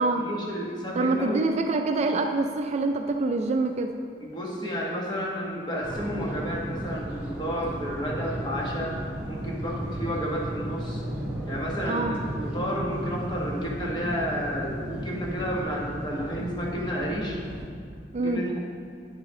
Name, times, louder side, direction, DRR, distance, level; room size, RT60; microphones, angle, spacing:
voice 1, 0.0-1.4 4.2-9.0 9.3-11.0 11.4-17.4 18.2-18.6, equal, 25° left, -3 dB, 1.3 m, -31 dB
voice 2, 1.0-4.0 11.9-12.2 18.1-18.4, right 3 dB, 40° right, 5 dB, 0.4 m, -25 dB
sound 1, 5.8-17.7, equal, 10° right, 1.5 m, -34 dB
9.6 x 6.2 x 3.7 m, 2.2 s
head